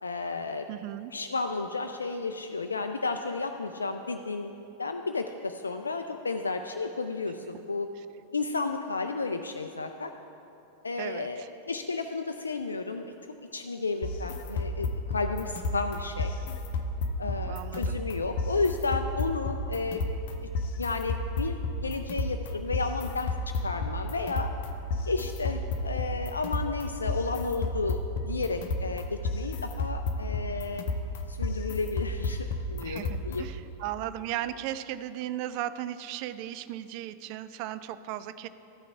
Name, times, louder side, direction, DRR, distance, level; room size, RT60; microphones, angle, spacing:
voice 1, 0.0-0.7 1.1-7.9 8.3-10.1 10.8-13.1 13.5-14.9 15.1-16.3 17.2-20.0 20.8-23.3 23.6-24.5 25.1-30.8 31.3-33.5, left 3 dB, 75° left, 6 dB, 0.3 m, -32 dB
voice 2, 0.7-1.1 8.0-8.1 11.0-11.5 17.2-18.0 32.8-38.5, right 12 dB, 45° right, 13 dB, 0.3 m, -36 dB
sound 1, 14.0-33.6, left 2 dB, 50° left, 0.7 m, -32 dB
13.5 x 5.7 x 4.7 m, 2.8 s
figure-of-eight pair, 90°, 0 cm